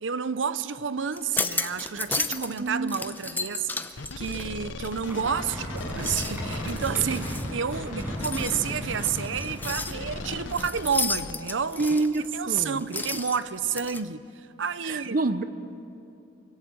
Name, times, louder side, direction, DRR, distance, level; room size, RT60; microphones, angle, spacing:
voice 1, 0.0-11.8 12.3-15.2, right 6 dB, 80° right, 0.7 m, -30 dB
sound 1, 1.1-2.6 2.9-5.3 5.7-14.0, left 3 dB, 10° left, 0.7 m, -34 dB
voice 2, 2.3-2.9 7.9-8.0 11.8-12.8 14.8-15.4, right 3 dB, 50° right, 0.8 m, -28 dB
sound 2, 4.0-11.3, left 3 dB, 85° left, 1.0 m, -38 dB
sound 3, 5.1-10.7, equal, 10° right, 5.7 m, -36 dB
24.5 x 17.0 x 7.7 m
head